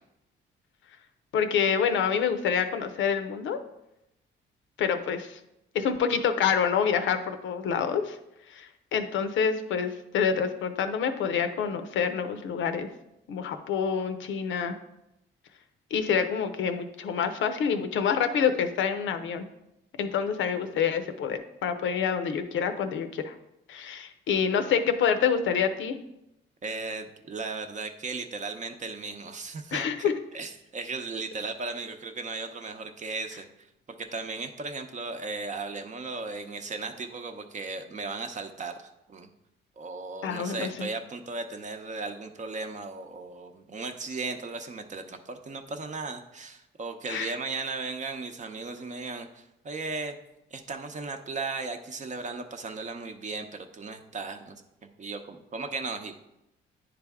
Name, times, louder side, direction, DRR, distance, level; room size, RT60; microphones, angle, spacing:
voice 1, 1.3-3.6 4.8-5.4 5.7-8.2 8.5-12.9 13.3-14.8 15.9-19.4 20.0-23.3 23.7-26.0 29.7-30.1 40.2-40.9 47.1-47.3, left 7 dB, 75° left, 8 dB, 0.6 m, -27 dB
voice 2, 26.6-30.1 30.3-33.7 34.0-38.7 39.1-39.3 39.8-50.1 50.5-54.6 55.0-56.2, right 3 dB, 40° right, 6 dB, 0.7 m, -36 dB
9.8 x 3.4 x 3.5 m, 0.87 s
cardioid pair, 90°, 20 cm